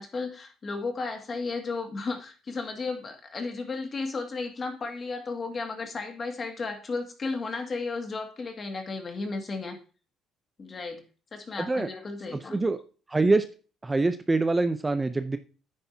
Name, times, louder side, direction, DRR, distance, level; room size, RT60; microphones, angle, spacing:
voice 1, 0.0-9.8 10.6-11.0 11.3-12.6, left 3 dB, 35° left, 4 dB, 2.1 m, -34 dB
voice 2, 11.6-11.9 12.3-12.8 13.1-13.4 13.8-15.4, right 3 dB, 15° right, 10 dB, 0.6 m, -25 dB
9.9 x 9.6 x 2.8 m, 0.37 s
cardioid pair, 110°, 0 cm